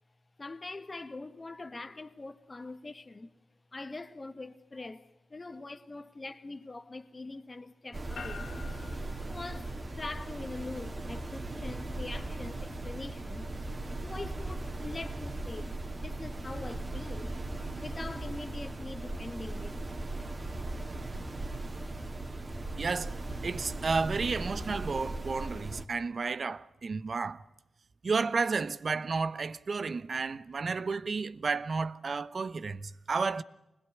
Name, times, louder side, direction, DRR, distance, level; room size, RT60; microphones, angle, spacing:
voice 1, 0.4-3.3 3.7-8.5 9.3-13.5 14.0-17.4 17.8-19.9, left 2 dB, 35° left, 1.7 m, -43 dB
sound 1, 7.9-25.8, right 2 dB, 35° right, 2.8 m, -38 dB
sound 2, 8.2-22.4, left 5 dB, 80° left, 3.6 m, -54 dB
voice 2, 22.8-27.4 28.0-33.4, right 4 dB, 55° right, 1.1 m, -32 dB
26.0 x 21.0 x 9.4 m
cardioid pair, 65°, 0 cm